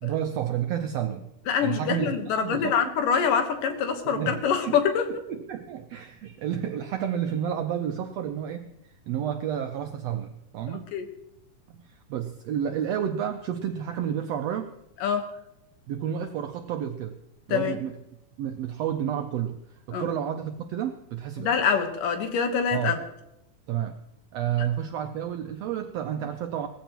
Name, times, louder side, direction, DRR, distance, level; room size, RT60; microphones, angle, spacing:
voice 1, 0.0-1.3 1.6-2.9 4.0-4.4 4.7-4.8 5.1-10.9 11.7-11.8 12.1-14.7 15.9-17.2 17.5-18.0 18.4-19.6 19.9-21.6 22.7-22.9 23.7-24.0 24.3-26.7, right 9 dB, 80° right, 6 dB, 1.4 m, -30 dB
voice 2, 1.5-5.1 10.7-11.1 15.0-15.3 17.5-17.8 19.9-20.1 21.4-23.0, left 6 dB, 85° left, 6 dB, 2.9 m, -25 dB
19.0 x 14.5 x 3.0 m, 0.87 s
omnidirectional pair, 3.7 m